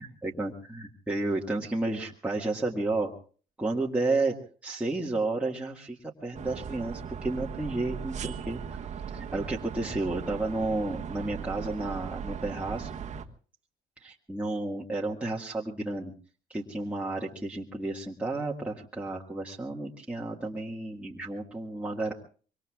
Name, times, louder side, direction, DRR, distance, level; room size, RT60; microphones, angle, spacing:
voice 1, 0.0-3.1 3.6-4.4 4.6-12.9 14.0-16.1 16.5-22.1, right 2 dB, 5° right, -3 dB, 1.7 m, -32 dB
sound 1, 6.3-13.3, right 7 dB, 45° right, 1.4 m, -38 dB
25.5 x 23.5 x 2.4 m, 0.42 s
cardioid pair, 110°, 17 cm